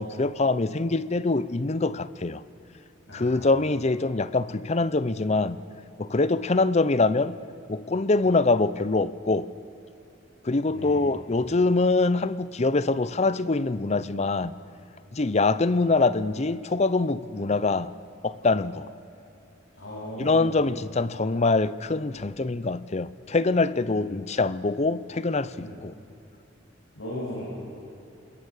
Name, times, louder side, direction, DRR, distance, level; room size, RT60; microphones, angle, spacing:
voice 1, 0.0-2.4 3.1-5.6 6.0-7.4 7.7-9.5 10.4-14.5 15.1-17.9 18.2-18.9 20.2-25.9, left 3 dB, 35° left, 0.6 m, -24 dB
voice 2, 3.1-3.4 10.7-11.0 19.8-20.6 25.6-25.7 26.9-27.4, equal, 65° left, 7.9 m, -37 dB
27.5 x 21.5 x 6.5 m
head